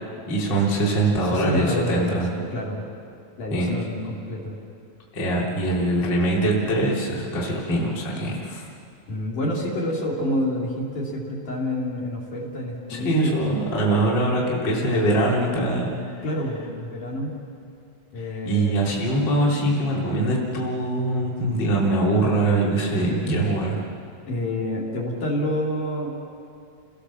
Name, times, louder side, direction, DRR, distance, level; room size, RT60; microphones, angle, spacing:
voice 1, 0.3-2.3 3.5-3.7 5.1-8.7 12.9-15.9 16.2-16.3 18.2-23.8, right 1 dB, 30° left, -4 dB, 3.3 m, -23 dB
voice 2, 1.2-2.8 3.4-4.6 9.1-13.4 13.9-14.0 16.2-17.3 18.1-19.0 23.1-23.5 24.3-26.1, left 1 dB, 55° left, -3 dB, 4.6 m, -28 dB
30.0 x 18.5 x 7.2 m, 2.4 s
omnidirectional pair, 4.4 m